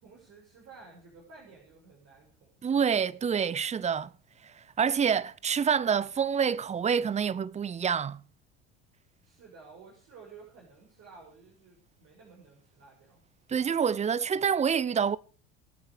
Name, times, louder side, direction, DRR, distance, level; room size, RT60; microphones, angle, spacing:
voice 1, 0.0-2.6 9.2-13.2, right 4 dB, 50° right, 7.0 m, -53 dB
voice 2, 2.6-4.1 4.4-8.2 13.5-15.2, right 7 dB, 20° right, 0.8 m, -27 dB
24.0 x 8.8 x 5.1 m
hypercardioid pair, 75°, 33 cm